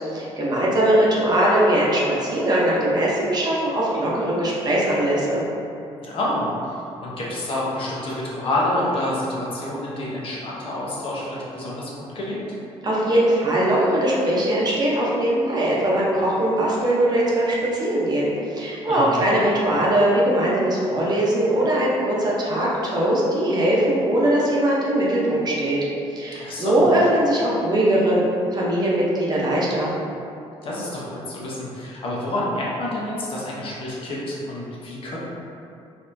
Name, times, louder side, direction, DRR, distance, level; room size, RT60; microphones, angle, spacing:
voice 1, 0.1-5.4 12.8-25.8 26.1-28.3 28.5-29.9, right 1 dB, 35° right, -5 dB, 0.8 m, -21 dB
voice 2, 6.0-6.7 7.0-12.4 18.9-19.3 26.3-26.9 30.6-35.2, left 1 dB, 50° left, -6 dB, 0.9 m, -28 dB
4.2 x 2.8 x 2.6 m, 2.7 s
cardioid pair, 100°, 11 cm